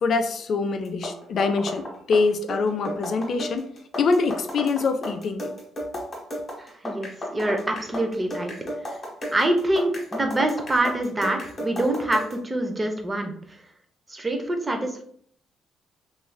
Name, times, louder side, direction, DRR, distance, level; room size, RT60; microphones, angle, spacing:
voice 1, 0.0-3.7 4.0-5.5, left 4 dB, 60° left, 8 dB, 0.3 m, -24 dB
sound 1, 0.9-12.4, equal, 35° left, 1.0 m, -34 dB
voice 2, 6.6-8.6 8.9-9.0 9.3-13.3 14.1-15.0, right 1 dB, 20° right, 4 dB, 0.5 m, -25 dB
3.1 x 2.4 x 2.2 m, 0.63 s
cardioid pair, 90°, 0 cm